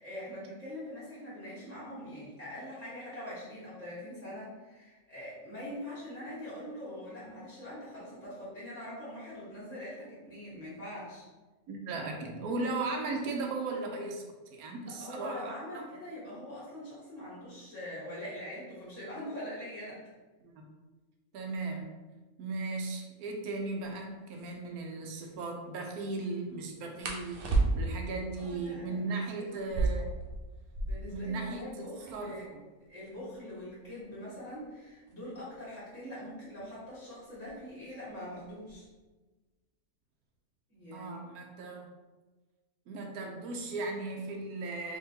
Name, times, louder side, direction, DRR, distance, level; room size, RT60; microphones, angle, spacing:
voice 1, 0.0-11.2 14.9-20.0 28.4-29.6 30.9-32.4 32.9-38.9 40.7-41.2, left 1 dB, 10° right, -12 dB, 1.2 m, -43 dB
voice 2, 11.7-14.2 14.5-15.9 20.4-20.6 21.3-21.9 22.4-30.1 31.1-31.6 32.1-32.6 40.9-41.9 42.9-45.0, right 3 dB, 85° right, 2 dB, 1.1 m, -37 dB
sound 1, 24.3-24.5 27.0-28.1 29.6-31.2 31.5-31.6 31.8-32.4 33.0-35.6 36.6-36.9 37.3-37.8 38.1-38.8, right 3 dB, 65° right, 0.5 m, -33 dB
3.7 x 3.1 x 2.8 m, 1.2 s
omnidirectional pair, 1.5 m